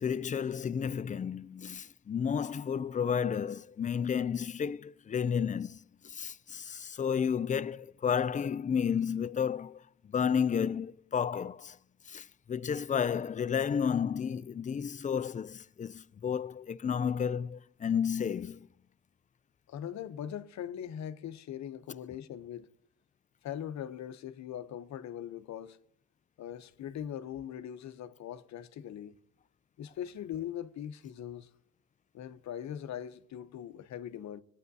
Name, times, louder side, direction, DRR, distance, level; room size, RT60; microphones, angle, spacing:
voice 1, 0.0-11.8 12.1-18.7, left 7 dB, 25° left, 0.4 m, -32 dB
voice 2, 19.7-22.7 23.4-25.8 26.4-29.2 29.8-31.5 32.1-34.4, left 10 dB, 65° left, 0.8 m, -41 dB
20.0 x 9.2 x 2.7 m
cardioid pair, 90°, 30 cm